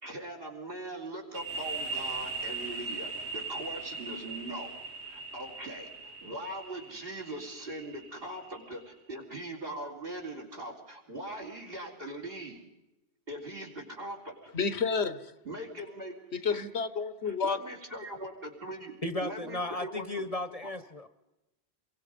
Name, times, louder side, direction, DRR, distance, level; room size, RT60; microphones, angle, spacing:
voice 1, 0.0-4.7 5.0-8.8 9.1-12.6 13.3-14.5 15.4-16.1 16.5-16.6 17.3-18.9 19.2-20.2 20.6-20.7, right 1 dB, 60° right, 2 dB, 4.3 m, -41 dB
sound 1, 1.3-8.8, right 3 dB, 90° right, 2.0 m, -39 dB
voice 2, 14.5-15.3 16.3-17.6, left 5 dB, 85° left, 13 dB, 1.4 m, -30 dB
voice 3, 19.0-21.1, left 2 dB, 35° left, 10 dB, 1.0 m, -35 dB
28.5 x 23.0 x 5.3 m, 0.99 s
omnidirectional pair, 1.1 m